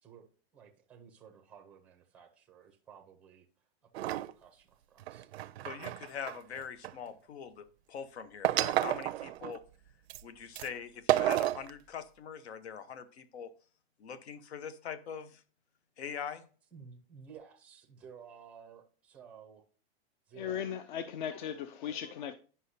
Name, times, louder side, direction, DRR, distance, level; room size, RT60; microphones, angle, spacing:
voice 1, 0.5-3.5 3.8-5.3 16.7-19.6 20.3-20.6, right 6 dB, 5° right, 0.4 m, -54 dB
sound 1, 3.9-4.3 5.0-6.9 8.4-9.6 10.1-10.2 10.6-10.7 11.1-11.7, right 14 dB, 80° right, 0.5 m, -31 dB
voice 2, 5.6-9.6 10.2-13.5 14.0-15.4 16.0-16.4, left 7 dB, 85° left, 1.0 m, -43 dB
voice 3, 20.4-22.3, left 9 dB, 50° left, 0.5 m, -37 dB
9.7 x 5.5 x 2.7 m
supercardioid pair, 170°, 32 cm